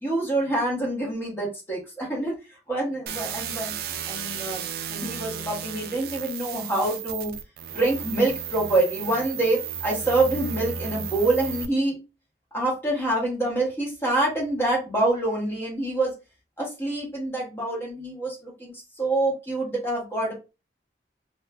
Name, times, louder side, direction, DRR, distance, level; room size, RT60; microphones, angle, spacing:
voice 1, 0.0-2.4 2.7-3.8 4.0-4.6 4.9-7.3 7.7-12.0 12.5-16.1 16.6-20.3, right 2 dB, 15° left, -4 dB, 1.1 m, -26 dB
sound 1, 3.1-11.7, right 7 dB, 60° right, 0.3 m, -34 dB
2.6 x 2.3 x 2.2 m, 0.28 s
head